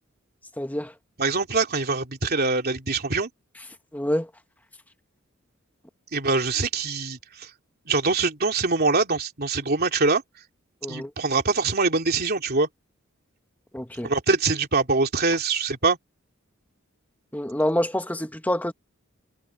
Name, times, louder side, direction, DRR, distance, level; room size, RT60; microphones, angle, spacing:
voice 1, 0.6-0.9 3.9-4.3 10.8-11.1 13.7-14.1 17.3-18.7, left 1 dB, 10° left, 1.3 m, -26 dB
voice 2, 1.2-3.3 6.1-7.5 7.9-10.2 10.9-12.7 14.0-16.0, right 3 dB, 45° right, 3.0 m, -24 dB
head